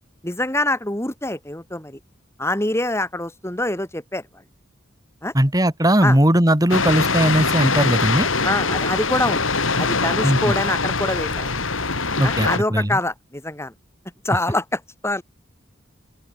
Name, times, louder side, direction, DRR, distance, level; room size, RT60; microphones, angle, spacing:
voice 1, 0.2-2.0 2.4-4.2 5.2-5.3 6.0-6.2 8.4-9.4 9.8-11.6 12.2-13.7 14.2-15.2, left 1 dB, 15° left, 3.8 m, -25 dB
voice 2, 5.3-8.3 10.2-10.4 12.2-13.0, right 1 dB, 20° right, 3.1 m, -18 dB
sound 1, 6.7-12.6, left 4 dB, 75° left, 5.4 m, -22 dB
open air
head